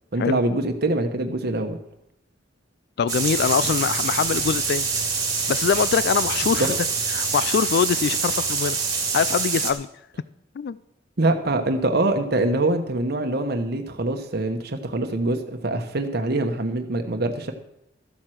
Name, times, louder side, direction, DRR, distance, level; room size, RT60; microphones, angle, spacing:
voice 1, 0.1-1.8 6.6-6.7 11.2-17.5, right 2 dB, 55° right, 1.1 m, -24 dB
voice 2, 3.0-4.9 5.5-6.9 7.1-8.8 9.1-9.9 10.6-10.8, left 6 dB, 60° left, 0.3 m, -23 dB
sound 1, 3.1-9.7, right 5 dB, 20° right, 1.9 m, -25 dB
13.5 x 7.6 x 6.3 m
head